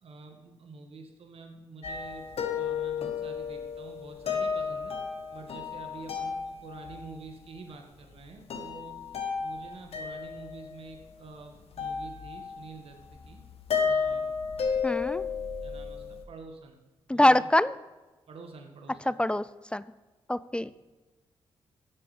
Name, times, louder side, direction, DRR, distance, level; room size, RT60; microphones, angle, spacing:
voice 1, 0.0-5.0 5.3-9.0 9.4-13.4 13.8-14.3 15.6-16.8 17.1-17.4 18.3-19.1 20.6-20.7, right 3 dB, 65° right, 4 dB, 1.7 m, -47 dB
sound 1, 1.8-7.1 8.2-8.3 8.5-11.3 11.7-12.7 13.0-16.2, left 6 dB, 70° left, 1.6 m, -33 dB
voice 2, 14.8-15.2 17.1-17.7 19.1-19.5 19.7-19.8 20.3-20.7, left 1 dB, 10° left, 17 dB, 0.4 m, -24 dB
13.0 x 7.9 x 5.0 m, 1.2 s
cardioid pair, 65°, 10 cm